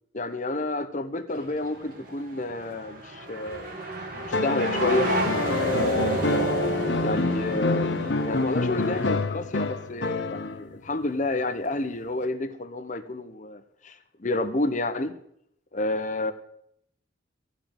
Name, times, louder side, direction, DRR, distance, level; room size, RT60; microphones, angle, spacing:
voice 1, 0.1-3.8 4.1-5.1 5.6-6.5 7.0-15.2 15.7-16.3, left 2 dB, 40° left, 10 dB, 0.9 m, -30 dB
sound 1, 1.3-9.1, right 1 dB, 50° right, 2.0 m, -31 dB
sound 2, 4.3-10.8 12.2-12.3, left 3 dB, 70° left, 0.9 m, -27 dB
14.5 x 5.1 x 8.9 m, 0.73 s
head